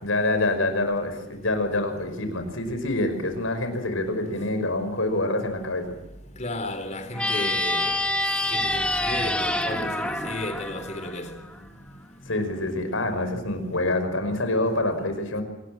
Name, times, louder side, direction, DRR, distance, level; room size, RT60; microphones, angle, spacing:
voice 1, 0.0-5.9 12.3-15.4, left 2 dB, 85° left, 5.6 m, -26 dB
voice 2, 6.3-11.7 12.2-12.4 13.0-13.2, left 1 dB, 35° left, 3.9 m, -34 dB
sound 1, 7.1-11.6, left 1 dB, 5° left, 2.0 m, -27 dB
26.5 x 20.0 x 7.8 m
head